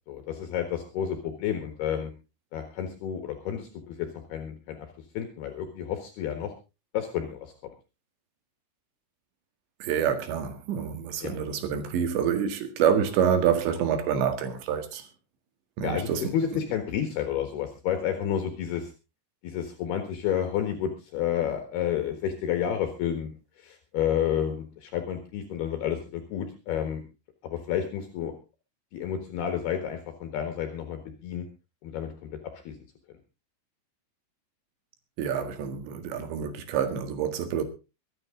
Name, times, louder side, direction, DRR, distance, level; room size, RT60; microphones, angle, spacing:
voice 1, 0.1-2.1 2.5-4.8 5.2-6.5 6.9-7.5 11.2-11.3 15.8-18.9 19.4-23.3 23.6-27.0 27.4-28.3 28.9-31.5 31.8-32.3 32.7-32.8, left 9 dB, 70° left, 3.4 m, -30 dB
voice 2, 9.8-15.1 15.8-16.3 35.2-37.6, right 8 dB, 90° right, 4.1 m, -27 dB
23.0 x 9.4 x 3.7 m
omnidirectional pair, 4.9 m